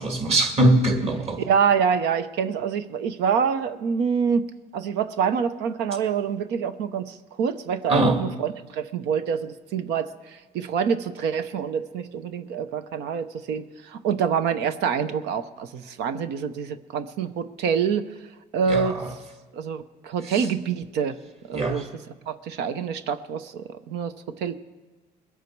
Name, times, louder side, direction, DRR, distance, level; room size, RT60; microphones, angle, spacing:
voice 1, 0.0-1.4 7.9-8.2 18.7-19.1 21.5-21.8, right 1 dB, 40° right, 2.2 m, -21 dB
voice 2, 1.4-4.4 4.7-18.1 18.5-19.0 19.5-21.2 21.5-21.9 22.3-24.1 24.4-24.5, right 7 dB, 85° right, 0.8 m, -26 dB
22.0 x 8.2 x 4.7 m
cardioid pair, 110°, 17 cm